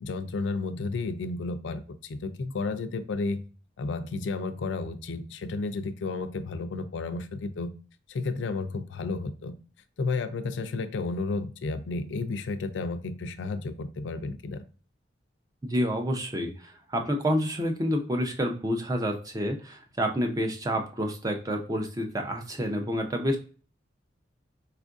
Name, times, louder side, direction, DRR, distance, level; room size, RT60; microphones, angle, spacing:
voice 1, 0.0-3.4 3.8-7.7 8.1-9.5 10.0-14.6, left 3 dB, 75° left, 10 dB, 0.4 m, -32 dB
voice 2, 15.6-23.4, equal, 20° right, 3 dB, 0.5 m, -29 dB
4.4 x 2.5 x 2.4 m, 0.37 s
head